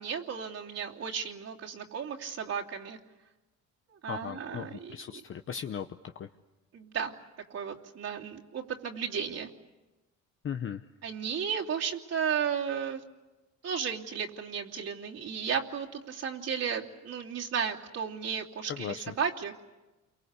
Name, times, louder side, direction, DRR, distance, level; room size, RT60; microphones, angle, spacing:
voice 1, 0.0-3.0 4.0-5.2 6.7-7.1 7.5-9.5 11.0-13.0 13.6-19.6, right 7 dB, 55° right, -1 dB, 3.0 m, -34 dB
voice 2, 4.1-5.9 6.1-6.3 10.4-10.9 18.7-19.1, left 8 dB, 45° left, 7 dB, 0.9 m, -37 dB
29.5 x 24.0 x 8.3 m, 1.1 s
cardioid pair, 110°, 31 cm